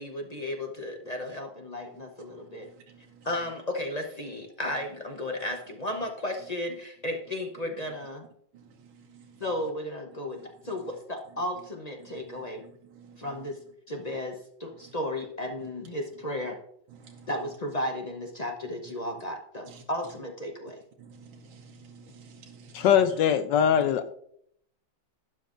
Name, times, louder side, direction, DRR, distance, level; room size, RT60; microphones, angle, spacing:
voice 1, 0.0-2.7 3.2-8.2 9.4-10.4 10.6-12.6 13.2-13.6 13.9-16.6 17.3-20.8, left 1 dB, 45° left, 0.5 m, -34 dB
voice 2, 2.5-3.3 8.5-9.4 12.1-13.3 17.0-17.3 19.7-19.8 21.0-22.9, right 5 dB, 90° right, 1.6 m, -52 dB
voice 3, 22.7-24.1, left 8 dB, 70° left, 1.1 m, -22 dB
12.0 x 10.0 x 2.5 m
omnidirectional pair, 2.2 m